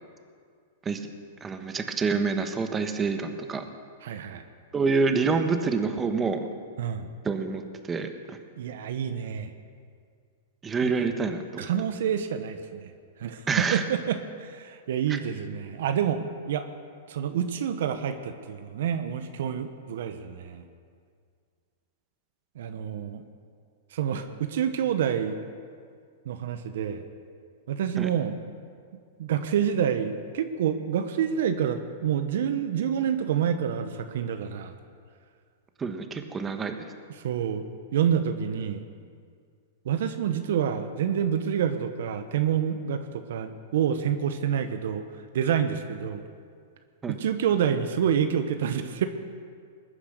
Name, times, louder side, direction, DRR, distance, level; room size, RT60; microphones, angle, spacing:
voice 1, 1.4-3.6 4.7-6.5 7.2-7.6 7.9-8.4 10.6-11.7 13.5-13.8 15.1-15.2 28.0-28.1 35.8-36.8 47.0-47.2, right 4 dB, 15° right, 7 dB, 1.3 m, -27 dB
voice 2, 4.0-4.4 6.8-7.1 8.6-9.5 10.8-10.9 11.6-12.9 13.2-16.6 17.1-20.6 22.6-23.2 23.9-25.4 26.2-27.0 27.7-28.4 29.2-34.8 37.2-37.6 37.9-38.8 39.8-45.0 45.3-46.2 47.1-49.0, right 8 dB, 70° right, 8 dB, 1.1 m, -28 dB
20.5 x 9.8 x 6.7 m, 2.1 s
hypercardioid pair, 135°, 0 cm